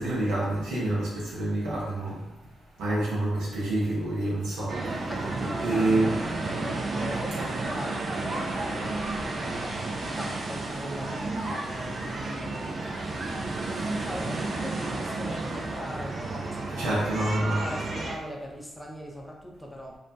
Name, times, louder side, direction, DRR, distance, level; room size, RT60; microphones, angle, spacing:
voice 1, 0.0-2.2 2.8-4.7 5.6-6.1 16.8-17.6, right 1 dB, 85° right, -6 dB, 0.8 m, -27 dB
sound 1, 4.7-18.2, right 2 dB, 55° right, 0.4 m, -32 dB
voice 2, 5.0-9.6 10.0-12.7 13.6-20.0, equal, 10° left, -1 dB, 0.6 m, -40 dB
2.3 x 2.1 x 2.6 m, 0.95 s
hypercardioid pair, 40°, 0 cm